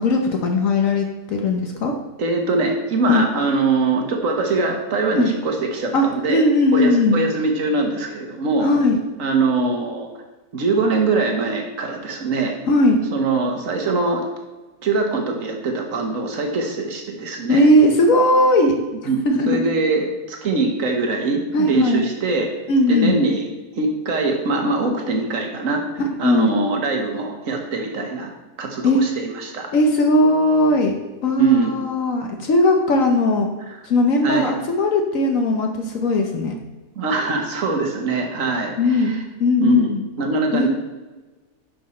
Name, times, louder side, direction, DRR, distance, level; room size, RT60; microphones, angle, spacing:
voice 1, 0.0-1.9 3.1-3.3 5.1-5.3 5.9-7.2 8.6-9.0 12.7-13.0 17.5-18.8 19.2-19.7 21.5-22.1 22.7-23.2 26.2-26.5 28.8-29.0 29.7-33.5 33.8-36.6 38.8-40.0 40.5-40.7, left 1 dB, 65° left, 3 dB, 1.2 m, -18 dB
voice 2, 2.2-6.4 6.7-8.7 9.2-10.1 10.5-12.5 13.1-14.2 14.8-17.7 19.0-22.5 22.9-29.7 31.4-31.7 34.2-34.5 36.9-39.2 39.6-39.9 40.2-40.7, right 3 dB, 60° right, 3 dB, 1.7 m, -22 dB
10.5 x 5.8 x 4.3 m, 1.2 s
omnidirectional pair, 1.6 m